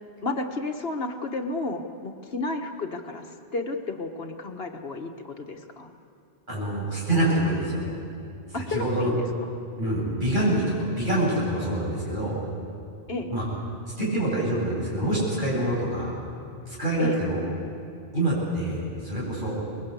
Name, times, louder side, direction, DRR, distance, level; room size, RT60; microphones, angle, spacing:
voice 1, 0.2-3.2 3.5-5.9 8.5-9.5 13.1-13.3 17.0-17.2, left 2 dB, 65° left, 4 dB, 1.6 m, -32 dB
voice 2, 6.5-7.8 8.5-9.1 9.8-12.4 13.3-13.4 14.0-16.1 16.7-17.4 18.1-19.6, right 1 dB, 50° right, -4 dB, 8.3 m, -26 dB
24.5 x 21.0 x 8.3 m, 2.6 s
omnidirectional pair, 1.1 m